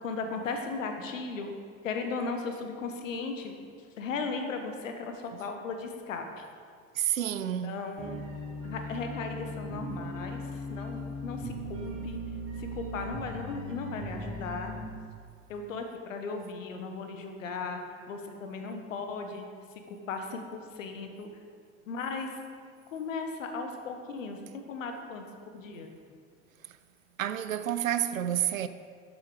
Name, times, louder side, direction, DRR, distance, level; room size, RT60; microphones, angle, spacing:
voice 1, 0.0-1.5 1.8-6.4 7.6-8.2 8.6-12.2 12.6-14.7 15.5-17.8 18.1-19.5 19.9-21.3 21.9-22.4 22.9-25.2 25.5-25.9, left 4 dB, 70° left, 1.2 m, -36 dB
voice 2, 6.9-7.7 27.2-28.7, right 11 dB, 80° right, 0.5 m, -29 dB
sound 1, 8.0-14.8, equal, 35° right, 2.8 m, -38 dB
12.5 x 7.5 x 5.0 m
figure-of-eight pair, 65°, 40 cm